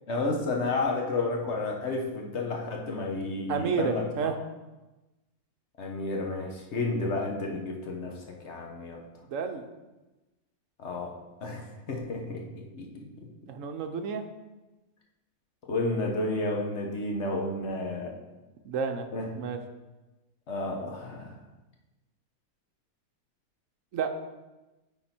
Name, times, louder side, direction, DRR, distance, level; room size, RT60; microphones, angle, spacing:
voice 1, 0.1-4.3 5.8-8.1 8.4-9.0 10.8-11.1 11.4-13.3 15.7-18.1 19.1-19.3 20.5-21.3, left 2 dB, 50° left, 1 dB, 1.3 m, -31 dB
voice 2, 3.5-4.3 9.3-9.7 13.5-14.3 18.6-19.1 19.4-19.6 23.9-24.1, right 5 dB, 65° right, 7 dB, 1.0 m, -30 dB
9.4 x 4.0 x 4.4 m, 1.1 s
omnidirectional pair, 1.6 m